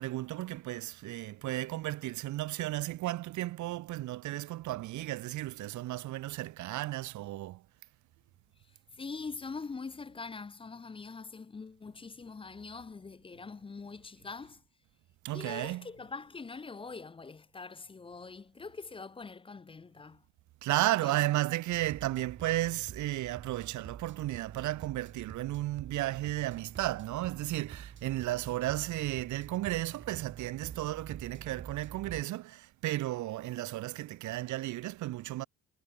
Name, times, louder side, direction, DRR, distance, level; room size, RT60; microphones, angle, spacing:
voice 1, 0.0-7.6 15.2-15.8 20.6-35.4, right 16 dB, 70° right, 0.7 m, -34 dB
voice 2, 8.6-14.6 15.3-20.2 21.0-21.2, left 4 dB, 15° left, 0.7 m, -43 dB
sound 1, 21.7-32.2, right 8 dB, 40° right, 3.3 m, -48 dB
cardioid pair, 165°, 31 cm